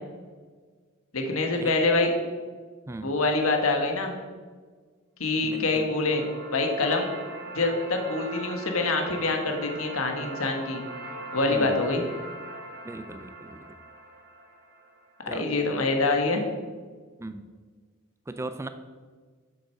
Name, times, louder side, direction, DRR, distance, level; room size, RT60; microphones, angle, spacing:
voice 1, 1.1-2.1 3.0-4.1 5.2-6.2 6.5-7.1 7.5-10.8 11.3-12.0 15.3-16.4, left 3 dB, 85° left, 3 dB, 1.4 m, -25 dB
voice 2, 5.4-5.9 11.5-11.8 12.8-13.8 15.3-15.5 17.2-17.5 18.3-18.7, right 2 dB, 15° right, 9 dB, 0.4 m, -38 dB
sound 1, 5.4-15.5, right 2 dB, 55° right, 1.7 m, -41 dB
7.6 x 6.7 x 5.7 m, 1.5 s
head